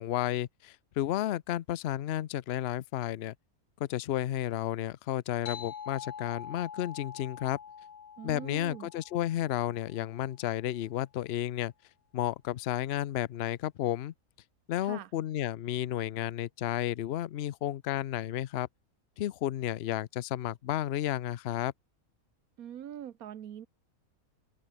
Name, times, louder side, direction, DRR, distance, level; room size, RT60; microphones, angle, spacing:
voice 1, 0.0-3.3 3.8-7.6 8.2-11.7 12.1-14.1 14.7-18.7 19.2-21.7, left 13 dB, 60° left, 0.7 m, -32 dB
sound 1, 5.5-10.4, left 7 dB, 85° left, 1.9 m, -45 dB
voice 2, 8.2-8.9 14.8-15.1 22.6-23.7, right 10 dB, 75° right, 1.4 m, -43 dB
open air
omnidirectional pair, 1.5 m